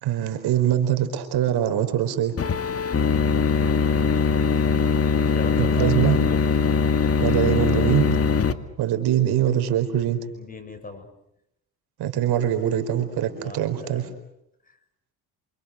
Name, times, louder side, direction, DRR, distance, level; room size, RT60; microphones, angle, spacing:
voice 1, 0.0-2.3 5.6-6.2 7.2-8.0 8.8-10.2 12.0-14.1, right 11 dB, 75° right, 8 dB, 4.7 m, -23 dB
sound 1, 2.4-8.5, left 5 dB, 35° left, 2.3 m, -21 dB
voice 2, 5.2-6.7 10.3-11.1 13.4-14.1 14.6-14.8, left 3 dB, 20° left, 7 dB, 7.3 m, -39 dB
29.5 x 27.5 x 6.7 m, 0.80 s
cardioid pair, 95°, 38 cm